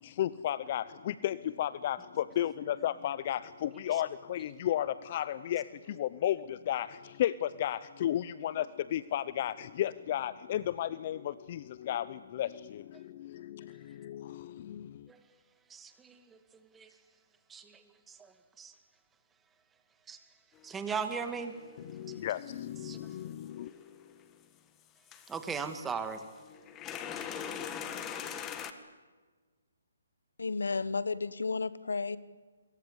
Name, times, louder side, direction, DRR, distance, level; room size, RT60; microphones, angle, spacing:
voice 1, 0.0-15.1 21.9-23.7, left 11 dB, 40° left, 0.7 m, -34 dB
voice 2, 15.7-17.0 17.5-18.7 20.1-20.2 20.6-21.6 22.8-23.0 25.3-26.3, right 5 dB, 10° right, 2.1 m, -39 dB
sound 1, 20.6-20.7 21.1-24.4 25.1-25.8 26.2-28.7, left 8 dB, 20° left, 1.8 m, -43 dB
voice 3, 30.4-32.2, left 4 dB, 85° left, 1.3 m, -32 dB
26.5 x 22.5 x 8.3 m
hypercardioid pair, 150°, 0 cm